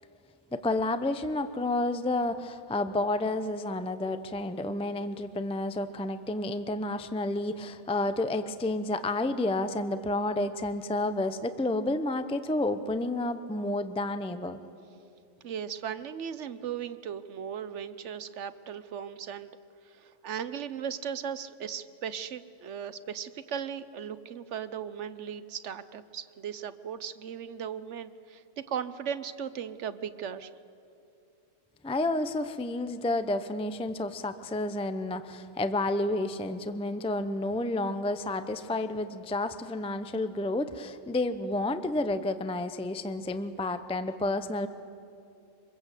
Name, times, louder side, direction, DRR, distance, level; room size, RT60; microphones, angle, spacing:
voice 1, 0.5-14.6 31.8-44.7, left 2 dB, 5° left, 11 dB, 0.5 m, -30 dB
voice 2, 15.4-19.5 19.8-30.5, right 8 dB, 65° right, 13 dB, 1.1 m, -37 dB
25.0 x 21.5 x 8.2 m, 2.7 s
omnidirectional pair, 1.3 m